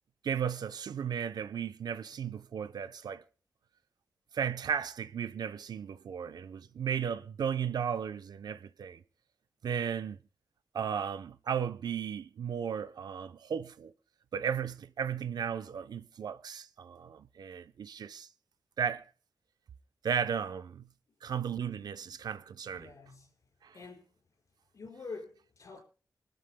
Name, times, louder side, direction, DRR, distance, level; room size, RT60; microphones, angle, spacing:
voice 1, 0.2-3.2 4.3-9.0 9.6-10.2 10.7-13.9 14.3-18.3 18.8-19.0 20.0-20.9 21.2-22.9 23.6-23.8, right 7 dB, 90° right, 0.7 m, -35 dB
voice 2, 22.8-23.3 23.7-24.1 24.7-25.8, left 4 dB, 55° left, 5.2 m, -46 dB
26.5 x 13.0 x 2.2 m
wide cardioid pair, 155°, 7 cm